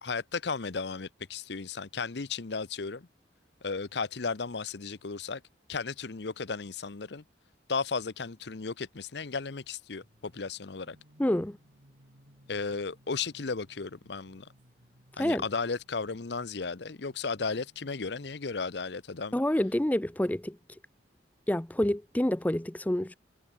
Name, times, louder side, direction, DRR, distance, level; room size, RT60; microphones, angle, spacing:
voice 1, 0.0-3.1 3.6-5.4 5.7-7.2 7.7-11.0 12.5-14.5 15.2-19.4, left 4 dB, 65° left, 0.8 m, -34 dB
sound 1, 10.0-18.3, equal, 65° right, 6.0 m, -62 dB
voice 2, 11.2-11.6 15.2-15.4 19.3-20.6 21.5-23.2, left 1 dB, 10° left, 0.5 m, -28 dB
head